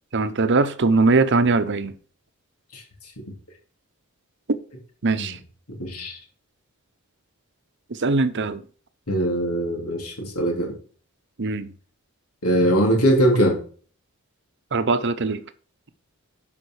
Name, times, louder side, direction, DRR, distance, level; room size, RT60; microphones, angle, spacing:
voice 1, 0.1-1.9 5.0-5.4 8.0-8.6 11.4-11.7 14.7-15.4, right 3 dB, 55° right, 0.8 m, -21 dB
voice 2, 5.7-6.2 9.1-10.7 12.4-13.6, right 1 dB, 85° left, 3.4 m, -21 dB
11.5 x 5.3 x 4.8 m
head